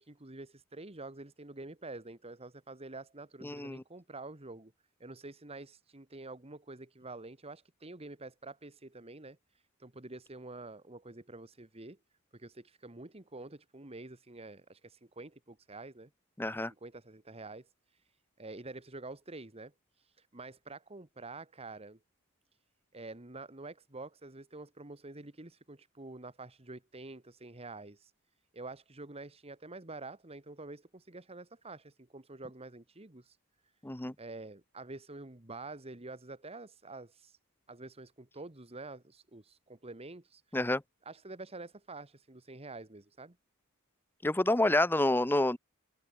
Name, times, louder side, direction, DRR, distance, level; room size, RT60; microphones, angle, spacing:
voice 1, 0.0-4.7 5.0-12.0 12.3-16.1 16.8-22.0 22.9-28.1 28.5-33.4 34.2-37.4 37.7-40.6 41.0-43.3, right 2 dB, 25° right, 1.6 m, -47 dB
voice 2, 3.4-3.8 16.4-16.7 33.8-34.1 40.5-40.8 44.2-45.6, left 1 dB, 10° left, 0.7 m, -28 dB
open air
head